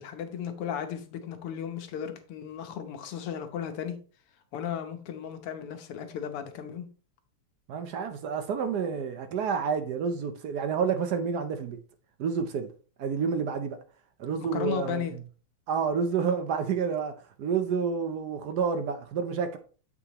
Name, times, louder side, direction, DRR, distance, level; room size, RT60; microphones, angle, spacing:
voice 1, 0.0-4.0 4.5-6.9 14.5-15.1, left 8 dB, 85° left, 1.9 m, -35 dB
voice 2, 7.7-11.8 12.2-12.7 13.0-13.8 14.2-15.2 15.7-19.6, right 6 dB, 70° right, 0.9 m, -29 dB
7.7 x 6.2 x 3.0 m
omnidirectional pair, 2.4 m